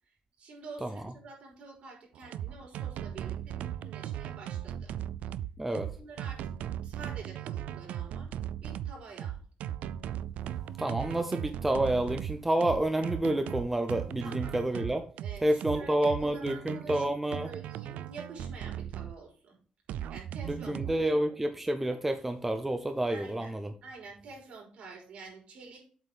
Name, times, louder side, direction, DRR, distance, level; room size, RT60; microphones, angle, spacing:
voice 1, 0.4-4.9 5.7-6.4 6.8-8.3 8.6-9.4 14.2-14.6 15.2-19.6 20.1-21.3 23.1-25.9, right 4 dB, 60° right, 4.5 m, -48 dB
sound 1, 2.1-19.1 19.9-21.1, right 11 dB, 85° right, 0.4 m, -37 dB
voice 2, 5.6-5.9 10.8-15.0 15.4-17.5 20.5-23.7, right 1 dB, 10° right, 0.6 m, -29 dB
8.0 x 4.3 x 5.4 m
cardioid pair, 160°, 2 cm